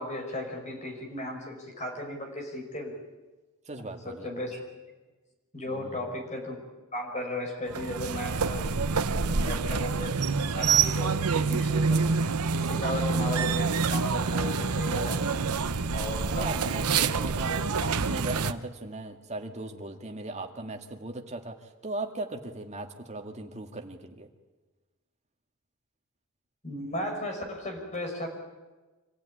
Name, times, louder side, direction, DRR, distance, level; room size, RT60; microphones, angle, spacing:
voice 1, 0.0-3.0 3.8-4.6 5.5-6.6 6.9-8.8 9.2-12.1 12.5-15.3 15.9-17.9 26.6-28.3, left 1 dB, 30° left, 2 dB, 5.2 m, -36 dB
voice 2, 3.7-4.3 5.7-6.2 16.3-17.5 18.0-24.3, right 2 dB, 30° right, 4 dB, 2.0 m, -38 dB
sound 1, 7.7-18.5, right 5 dB, 85° right, 0.9 m, -27 dB
26.0 x 16.0 x 9.8 m, 1.2 s
head